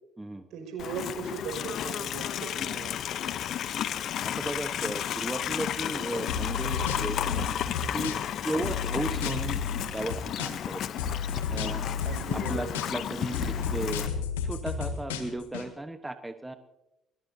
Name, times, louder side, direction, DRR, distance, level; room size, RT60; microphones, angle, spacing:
voice 1, 0.5-3.4 8.6-9.0 12.0-12.7 13.4-13.7, right 5 dB, 65° right, 4 dB, 5.7 m, -39 dB
Livestock farm animals working animals, 0.8-14.1, left 10 dB, 60° left, 0.8 m, -33 dB
voice 2, 4.2-7.5 7.9-8.1 8.4-9.6 9.9-10.8 11.5-11.9 12.3-16.6, right 2 dB, 10° right, 8 dB, 1.1 m, -35 dB
sound 1, 6.3-8.4 8.6-10.7 11.0-13.1 13.3-15.6, left 6 dB, 85° left, 1.7 m, -32 dB
22.0 x 21.5 x 2.8 m, 0.91 s
hypercardioid pair, 60°, 0 cm